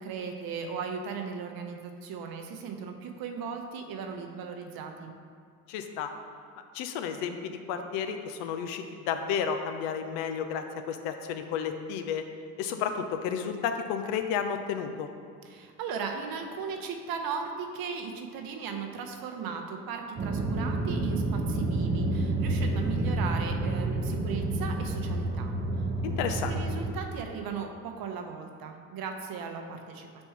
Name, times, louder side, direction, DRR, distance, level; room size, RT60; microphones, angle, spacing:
voice 1, 0.0-5.1 15.4-25.9 26.3-30.2, right 5 dB, 55° right, 4 dB, 0.8 m, -37 dB
voice 2, 5.7-6.1 6.7-12.2 12.6-15.1 26.0-26.6, left 7 dB, 65° left, 7 dB, 0.6 m, -32 dB
sound 1, 20.2-26.9, right 2 dB, 25° right, 0.7 m, -29 dB
4.4 x 4.4 x 5.5 m, 2.2 s
hypercardioid pair, 55°, 44 cm